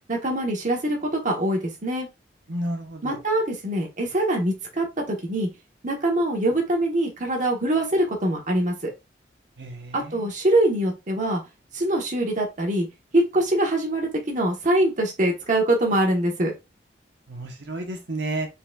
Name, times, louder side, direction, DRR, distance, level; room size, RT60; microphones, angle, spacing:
voice 1, 0.1-2.1 3.0-5.5 5.8-8.9 9.9-11.4 11.7-12.9 13.1-16.5, right 1 dB, 45° right, 0 dB, 1.2 m, -23 dB
voice 2, 2.5-3.2 9.6-10.2 17.3-18.5, right 1 dB, 80° right, 2 dB, 1.2 m, -31 dB
4.3 x 4.1 x 2.4 m, 0.24 s
head